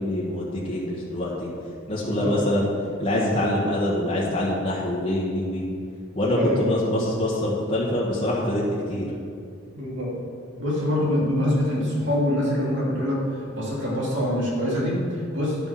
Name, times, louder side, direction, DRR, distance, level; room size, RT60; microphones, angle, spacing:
voice 1, 0.0-1.5 1.9-2.7 3.0-5.6 6.1-9.1, left 1 dB, 25° left, -7 dB, 1.5 m, -25 dB
voice 2, 2.0-2.3 6.3-6.7 9.7-10.1 10.6-15.6, left 1 dB, 65° right, -5 dB, 2.8 m, -25 dB
11.0 x 6.9 x 5.9 m, 2.4 s
head